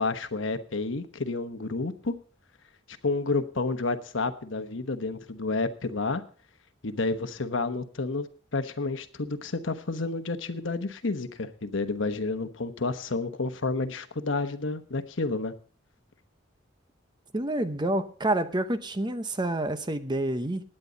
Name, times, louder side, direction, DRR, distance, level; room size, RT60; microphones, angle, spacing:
voice 1, 0.0-2.1 3.0-6.2 6.8-8.3 8.5-15.5, left 3 dB, 70° left, 1.1 m, -30 dB
voice 2, 17.3-20.6, right 1 dB, 20° right, 0.8 m, -28 dB
16.5 x 10.0 x 4.0 m
head